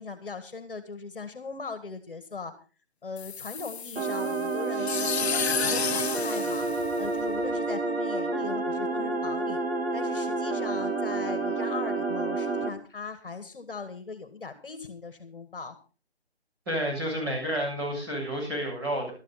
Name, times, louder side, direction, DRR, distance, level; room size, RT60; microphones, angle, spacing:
voice 1, 0.0-2.5 3.0-6.7 7.0-9.6 9.9-15.7, left 4 dB, 55° left, 11 dB, 1.7 m, -39 dB
sound 1, 3.2-7.5, left 7 dB, 70° left, 0.6 m, -32 dB
sound 2, 4.0-12.7, right 3 dB, 60° right, 3.1 m, -29 dB
voice 2, 16.7-19.1, equal, 20° right, -4 dB, 7.1 m, -30 dB
14.0 x 12.5 x 4.1 m, 0.35 s
hypercardioid pair, 175°, 33 cm